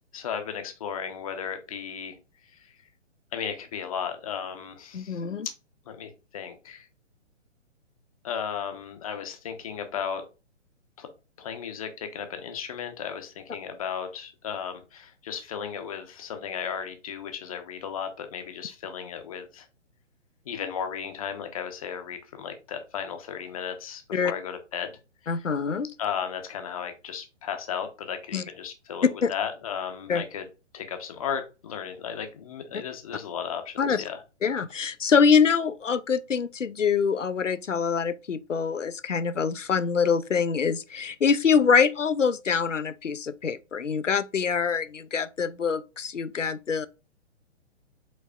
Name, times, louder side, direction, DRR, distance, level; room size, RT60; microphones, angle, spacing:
voice 1, 0.1-2.2 2.5-2.7 3.3-5.2 5.9-6.9 8.2-10.2 11.0-11.1 11.4-19.7 20.5-25.0 25.3-25.5 26.0-30.4 30.7-34.2, left 7 dB, 30° left, 0.7 m, -35 dB
voice 2, 4.9-5.5 24.1-24.3 25.3-25.9 28.3-28.4 29.2-29.3 30.1-30.2 33.8-34.0 34.4-46.9, left 6 dB, 85° left, 0.6 m, -24 dB
5.1 x 4.0 x 2.3 m
figure-of-eight pair, 125°, 36 cm